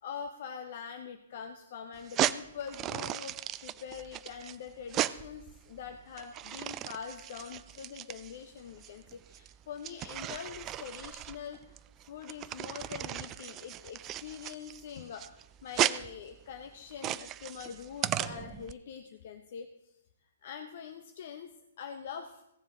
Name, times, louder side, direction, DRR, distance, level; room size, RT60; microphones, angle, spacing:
voice 1, 0.0-11.8 12.0-20.0 20.4-22.4, left 7 dB, 50° left, 7 dB, 0.7 m, -44 dB
sound 1, 2.0-18.7, right 13 dB, 25° right, 0.3 m, -36 dB
16.0 x 7.3 x 3.8 m, 0.83 s
figure-of-eight pair, 120°, 0 cm